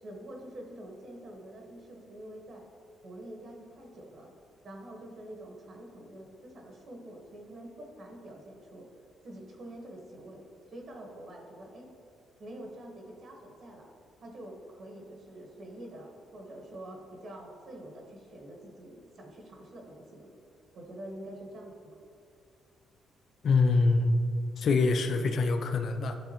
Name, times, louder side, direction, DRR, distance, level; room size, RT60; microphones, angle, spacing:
voice 1, 0.0-2.6 3.0-4.3 4.6-8.9 9.2-11.9 12.4-13.9 14.2-20.3 20.7-21.9, right 1 dB, 55° right, 0 dB, 1.0 m, -46 dB
voice 2, 23.4-24.2 24.6-26.1, left 3 dB, 60° left, 7 dB, 0.5 m, -25 dB
10.5 x 3.7 x 2.8 m, 2.4 s
cardioid pair, 90°, 0 cm